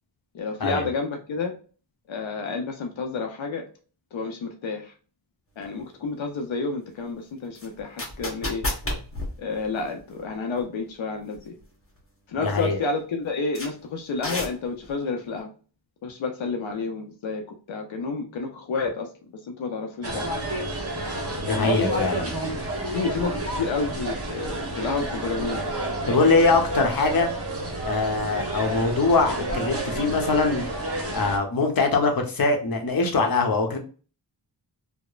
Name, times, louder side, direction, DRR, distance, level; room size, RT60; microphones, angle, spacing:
voice 1, 0.3-1.5 2.1-3.6 4.1-4.9 5.6-8.6 9.4-11.5 12.3-15.5 16.0-19.1 19.6-20.3 21.5-22.1 22.9-25.6, left 4 dB, 85° left, 3 dB, 0.6 m, -30 dB
sound 1, 5.6-5.7 7.5-10.3 10.6-10.7 11.3-11.6 12.0-12.1 12.6-12.7 13.5-13.7 14.2-14.9, left 1 dB, 30° left, 1.0 m, -31 dB
voice 2, 12.4-12.8 21.4-22.3 26.1-27.3 27.9-30.6 31.1-33.8, left 3 dB, 50° left, 3 dB, 0.8 m, -22 dB
sound 2, 20.0-31.4, right 2 dB, 30° right, 0.9 m, -30 dB
2.9 x 2.0 x 2.3 m, 0.38 s
cardioid pair, 45°, 45 cm